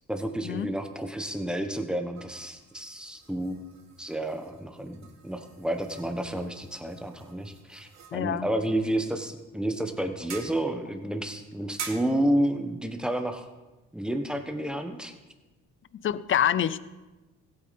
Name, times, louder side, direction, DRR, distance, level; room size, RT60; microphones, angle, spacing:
voice 1, 0.1-3.6 4.0-13.4 13.9-15.1, right 1 dB, 5° right, 6 dB, 1.2 m, -30 dB
sound 1, 2.1-15.2, right 7 dB, 65° right, 1.5 m, -48 dB
voice 2, 8.1-8.5 15.9-16.8, left 10 dB, 45° left, 17 dB, 0.5 m, -26 dB
15.5 x 8.7 x 4.2 m, 1.1 s
cardioid pair, 90°, 30 cm